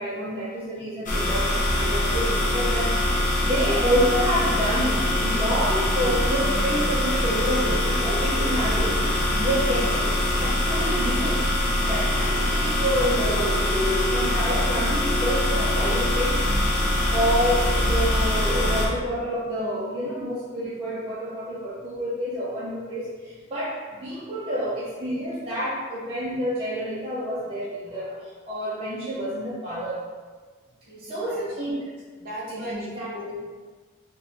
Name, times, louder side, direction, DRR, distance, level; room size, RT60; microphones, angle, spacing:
voice 1, 0.0-10.1 10.4-11.4 11.8-16.4 17.1-30.0 31.0-31.7 32.5-33.1, equal, 30° right, -10 dB, 0.6 m, -28 dB
sound 1, 1.1-18.9, left 1 dB, 40° left, 0.6 m, -23 dB
voice 2, 30.9-31.4 32.2-33.4, left 1 dB, 50° right, -6 dB, 0.9 m, -37 dB
3.5 x 2.5 x 3.0 m, 1.4 s
head